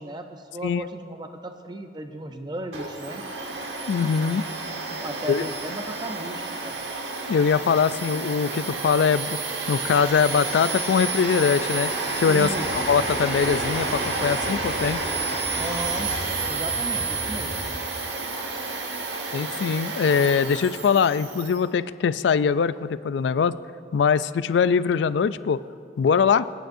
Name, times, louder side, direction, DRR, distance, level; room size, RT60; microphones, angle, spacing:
voice 1, 0.0-3.2 4.9-6.8 12.2-12.9 15.6-16.1 16.5-17.6, right 1 dB, 25° right, 6 dB, 0.5 m, -35 dB
Domestic sounds home sounds, 2.7-21.6, right 3 dB, 70° right, 1.3 m, -30 dB
voice 2, 3.9-4.5 5.3-5.4 7.3-9.4 9.7-11.9 12.2-15.0 19.3-23.6 23.9-25.6 26.0-26.5, left 6 dB, 75° left, 16 dB, 0.3 m, -22 dB
sound 1, 12.4-17.7, left 1 dB, 55° left, 1.5 m, -38 dB
24.0 x 9.2 x 2.6 m, 2.3 s
head